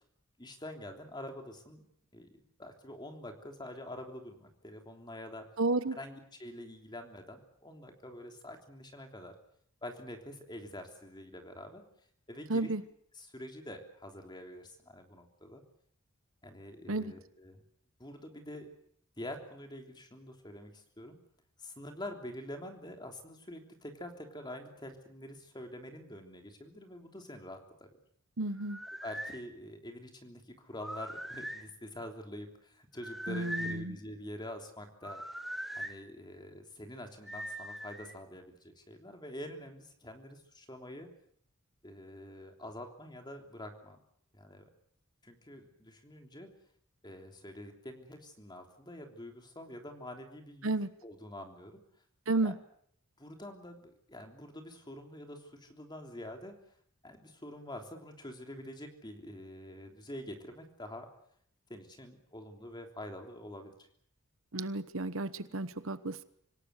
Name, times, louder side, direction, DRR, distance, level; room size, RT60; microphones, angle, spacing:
voice 1, 0.4-1.8 2.1-5.5 6.0-9.3 9.8-11.8 12.3-12.7 13.1-15.6 16.4-17.6 18.0-18.7 19.2-21.2 21.6-27.9 29.0-35.2 35.8-41.1 41.8-44.0 44.3-44.7 45.2-46.5 47.0-50.7 51.0-51.8 52.4-52.5 53.2-56.5 57.0-61.1 61.7-63.9, left 1 dB, 20° left, 4 dB, 3.2 m, -46 dB
voice 2, 5.6-6.0 12.5-12.8 16.9-17.1 28.4-28.8 33.3-34.0 50.6-50.9 52.3-52.5 64.5-66.2, right 2 dB, 65° right, 13 dB, 1.1 m, -32 dB
sound 1, 28.6-29.4 30.7-31.7 33.0-33.8 35.0-35.9 37.3-38.1, equal, ahead, 1.7 m, -41 dB
26.0 x 18.0 x 8.2 m, 0.67 s
head